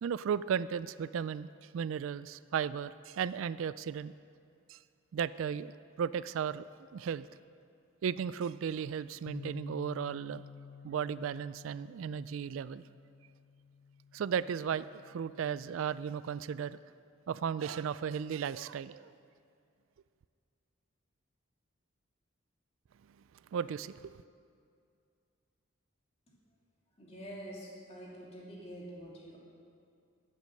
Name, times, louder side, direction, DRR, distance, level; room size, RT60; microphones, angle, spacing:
voice 1, 0.0-1.5 1.7-4.1 4.7-4.8 5.1-5.7 6.0-6.7 6.9-7.3 8.0-10.4 10.8-12.8 14.1-16.8 17.3-19.1 23.5-24.2, right 7 dB, 75° right, 16 dB, 0.3 m, -35 dB
Bass guitar, 9.3-15.5, left 5 dB, 80° left, 0.6 m, -51 dB
voice 2, 27.0-29.4, equal, 30° left, -4 dB, 2.7 m, -46 dB
15.0 x 8.2 x 6.5 m, 2.4 s
head